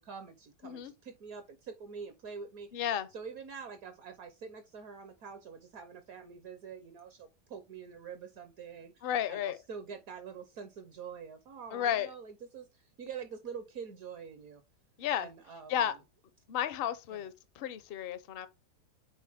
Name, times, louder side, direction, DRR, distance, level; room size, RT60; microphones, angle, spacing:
voice 1, 0.0-2.7 3.1-14.6 15.2-16.0 17.1-17.3, right 6 dB, 65° right, 1.1 m, -46 dB
voice 2, 2.7-3.1 9.0-9.6 11.7-12.1 15.0-15.3 15.7-15.9 16.5-18.5, left 10 dB, 60° left, 0.6 m, -33 dB
8.4 x 3.9 x 3.4 m
omnidirectional pair, 1.9 m